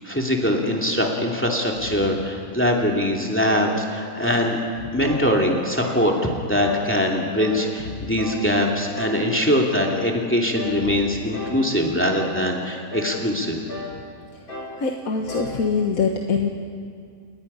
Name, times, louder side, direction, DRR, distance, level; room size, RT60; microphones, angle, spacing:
voice 1, 0.0-4.6 4.9-13.6, equal, 10° left, 0 dB, 2.4 m, -22 dB
sound 1, 3.4-3.7 4.2-4.5 5.0-5.3 5.8-6.1 6.6-6.9 7.4-7.7 8.2-8.5 9.0-9.2 9.7-10.1 10.5-10.8 11.3-11.6 12.1-12.5 12.9-13.2 13.7-14.0 14.5-14.8 15.3-15.6, left 3 dB, 85° left, 8.0 m, -33 dB
voice 2, 14.8-16.5, left 5 dB, 70° left, 2 dB, 1.7 m, -23 dB
29.5 x 20.0 x 5.6 m, 2.2 s
omnidirectional pair, 1.6 m